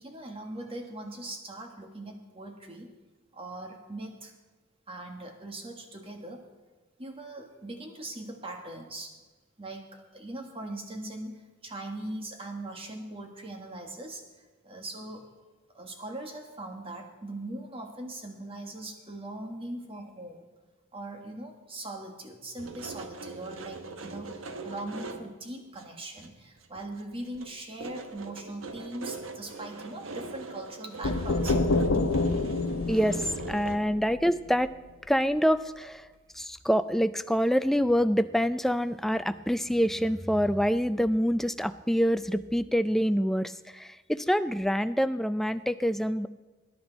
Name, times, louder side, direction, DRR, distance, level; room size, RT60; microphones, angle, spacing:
voice 1, 0.0-3.0 3.3-4.3 4.9-6.4 7.0-9.1 9.6-15.3 15.7-20.5 20.9-31.9 33.6-33.7, right 1 dB, 30° right, 3 dB, 1.6 m, -40 dB
sound 1, 22.6-25.4 25.7-25.8 26.2-27.0 27.3-33.8, right 3 dB, 80° right, 1.0 m, -41 dB
sound 2, 31.0-34.8, left 3 dB, 80° left, 0.7 m, -28 dB
voice 2, 33.5-34.7 35.1-36.0 36.4-46.3, equal, ahead, 12 dB, 0.3 m, -26 dB
20.0 x 10.5 x 4.1 m, 1.3 s
head